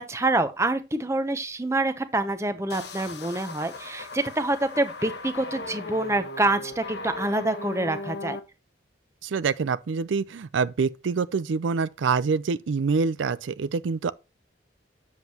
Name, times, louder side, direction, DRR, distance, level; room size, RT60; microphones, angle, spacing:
voice 1, 0.0-8.4, right 2 dB, 15° right, 0.7 m, -26 dB
sound 1, 2.7-8.4, left 2 dB, 65° left, 1.2 m, -37 dB
voice 2, 9.2-14.1, right 5 dB, 90° right, 0.4 m, -26 dB
7.9 x 7.4 x 2.9 m
head